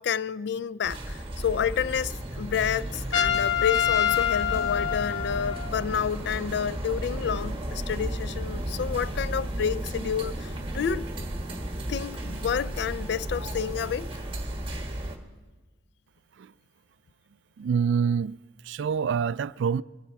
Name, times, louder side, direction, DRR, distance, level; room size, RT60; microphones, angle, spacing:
voice 1, 0.0-11.1 11.9-14.1, left 7 dB, 60° left, 0.3 m, -29 dB
sound 1, 0.8-15.2, right 1 dB, 30° right, 1.3 m, -34 dB
Trumpet, 3.1-5.8, left 10 dB, 80° left, 0.8 m, -26 dB
Bowed string instrument, 10.3-14.1, right 4 dB, 10° right, 3.1 m, -53 dB
voice 2, 17.6-19.8, right 6 dB, 75° right, 0.3 m, -26 dB
22.5 x 9.8 x 4.6 m
head